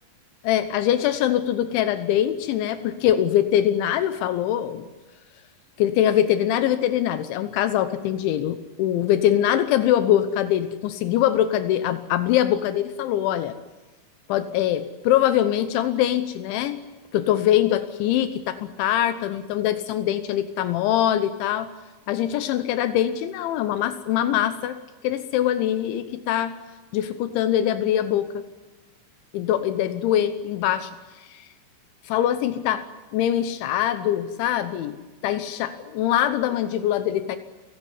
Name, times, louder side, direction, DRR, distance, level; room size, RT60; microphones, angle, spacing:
voice 1, 0.4-4.9 5.8-13.6 14.3-16.8 17.1-21.7 22.1-24.8 25.0-26.6 26.9-28.4 29.3-30.9 31.3-31.5 32.1-32.9 33.1-35.0 35.2-37.4, left 11 dB, 80° left, 10 dB, 3.4 m, -23 dB
29.5 x 18.0 x 9.7 m, 1.2 s
omnidirectional pair, 5.4 m